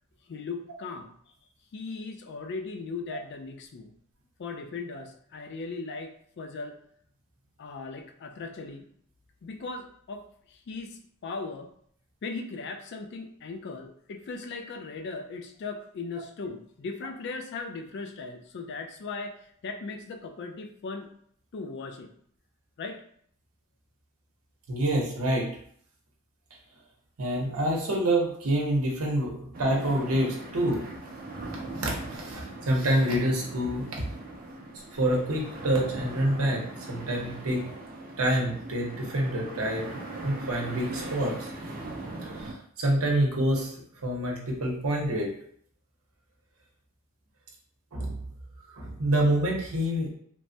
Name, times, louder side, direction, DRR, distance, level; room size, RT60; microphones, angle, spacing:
voice 1, 0.3-1.3 1.7-3.9 4.4-6.8 7.6-8.9 9.4-11.7 12.2-21.1 21.5-22.1 22.8-23.0, left 4 dB, 50° left, 5 dB, 0.3 m, -38 dB
voice 2, 24.7-25.5 27.2-30.8 31.7-34.0 34.9-36.6 36.9-37.6 38.2-39.9 40.2-41.5 42.4-42.5 42.8-43.7 44.0-45.3 47.9-48.2 48.7-50.1, right 1 dB, 75° right, -1 dB, 0.8 m, -27 dB
sound 1, 29.5-42.5, right 2 dB, 40° right, 0.4 m, -40 dB
3.1 x 2.1 x 2.6 m, 0.63 s
head